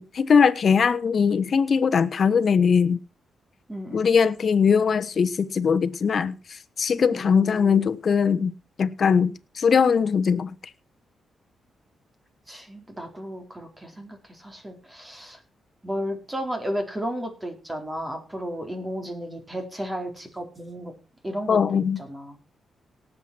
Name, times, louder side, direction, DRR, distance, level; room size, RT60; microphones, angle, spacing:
voice 1, 0.0-3.0 3.9-8.5 8.8-10.5 21.5-22.0, left 6 dB, 55° left, 1.2 m, -21 dB
voice 2, 3.7-4.1 7.1-7.8 12.5-15.4 15.8-20.9 21.2-22.4, equal, 15° right, 4.4 m, -34 dB
18.5 x 7.9 x 4.6 m
cardioid pair, 90°, 0 cm